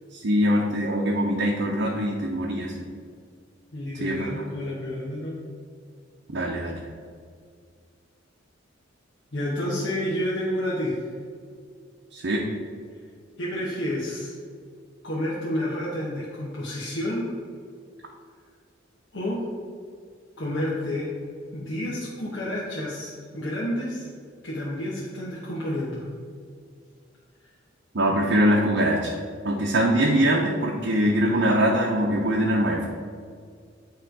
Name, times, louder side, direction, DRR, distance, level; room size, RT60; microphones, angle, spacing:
voice 1, 0.1-2.9 4.0-4.3 6.3-6.8 12.1-12.5 27.9-29.1 29.4-32.9, equal, 60° right, -2 dB, 0.7 m, -23 dB
voice 2, 3.7-5.4 9.3-11.1 13.4-14.3 15.0-17.3 19.1-19.5 20.4-21.1 21.5-24.1 24.4-26.0, left 1 dB, 65° left, -6 dB, 1.1 m, -30 dB
8.6 x 3.2 x 4.6 m, 2.1 s
head